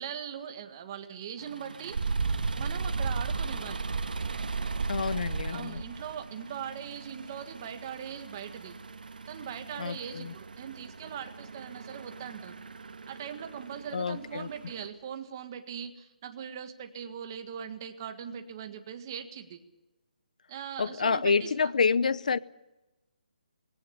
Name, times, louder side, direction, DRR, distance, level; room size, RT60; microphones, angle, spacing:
voice 1, 0.0-2.0 2.6-3.9 5.5-8.8 9.3-12.6 13.1-19.6 20.5-21.7, right 8 dB, 25° right, 1.7 m, -40 dB
sound 1, 1.4-14.9, right 4 dB, 75° right, 1.7 m, -36 dB
voice 2, 4.9-5.8 9.8-10.3 13.9-14.5 20.8-22.4, left 5 dB, 55° left, 0.8 m, -28 dB
19.5 x 17.0 x 10.0 m
hypercardioid pair, 170°, 5 cm